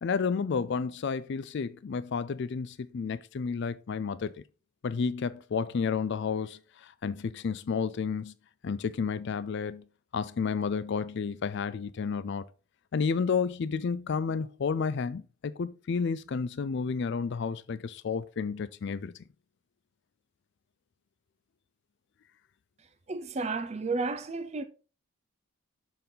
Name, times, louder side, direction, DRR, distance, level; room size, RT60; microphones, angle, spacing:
voice 1, 0.0-4.4 4.8-8.3 8.6-9.9 10.1-12.5 12.9-19.1, left 5 dB, 50° left, 0.4 m, -31 dB
voice 2, 23.1-24.6, right 3 dB, 30° right, 0.5 m, -32 dB
6.7 x 5.4 x 3.9 m
head